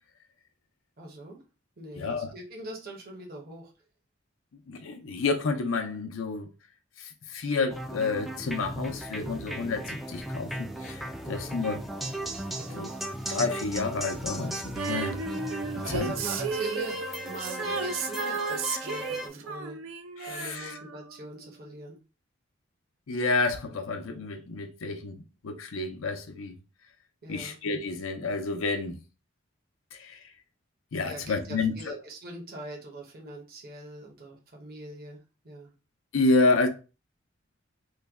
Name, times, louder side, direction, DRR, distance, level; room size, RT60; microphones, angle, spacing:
voice 1, 1.0-1.4 1.8-3.7 11.2-11.6 12.5-12.9 15.8-17.0 17.2-19.8 20.2-22.0 27.2-27.6 31.1-35.7, right 2 dB, 50° right, 0.9 m, -42 dB
voice 2, 2.0-2.3 4.7-6.5 7.0-11.8 12.7-12.9 13.3-15.2 15.9-16.1 20.2-20.8 23.1-26.6 27.3-29.0 29.9-30.2 30.9-32.0 36.1-36.7, left 3 dB, 80° left, 0.6 m, -29 dB
sound 1, 7.7-19.3, equal, ahead, 0.3 m, -36 dB
Female singing, 14.8-21.4 21.7-21.8, right 5 dB, 80° right, 0.5 m, -34 dB
3.2 x 2.2 x 3.4 m
head